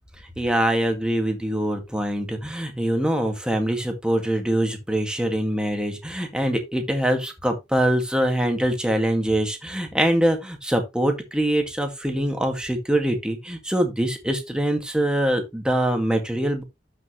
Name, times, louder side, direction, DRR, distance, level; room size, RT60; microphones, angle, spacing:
voice 1, 0.4-16.6, right 1 dB, 5° right, 2.0 m, -23 dB
12.0 x 6.1 x 3.1 m
head